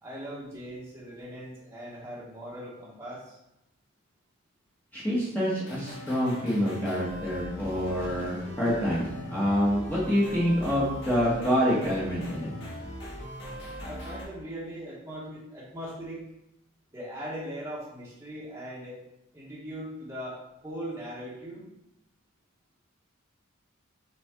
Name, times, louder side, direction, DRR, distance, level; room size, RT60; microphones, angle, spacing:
voice 1, 0.0-3.4 13.2-13.3 13.8-16.2 16.9-19.0 19.3-21.7, equal, 10° right, -7 dB, 1.4 m, -40 dB
voice 2, 4.9-12.5, equal, 10° left, -7 dB, 1.5 m, -27 dB
sound 1, 5.6-14.2, equal, 55° left, 2.1 m, -40 dB
6.0 x 5.1 x 3.7 m, 0.84 s
head